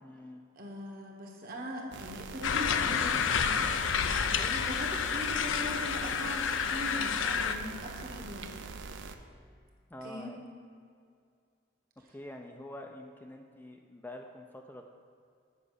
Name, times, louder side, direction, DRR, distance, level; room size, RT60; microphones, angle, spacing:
voice 1, 0.0-0.4 9.9-10.4 12.1-14.9, left 1 dB, 10° left, 3 dB, 0.4 m, -46 dB
voice 2, 0.5-3.7 4.3-8.5 10.0-10.3, left 1 dB, 50° right, 1 dB, 1.3 m, -40 dB
sound 1, 1.9-9.1, right 4 dB, 65° right, 0.5 m, -43 dB
sound 2, 2.4-7.5, left 7 dB, 80° left, 0.4 m, -29 dB
7.4 x 5.3 x 6.5 m, 2.3 s
head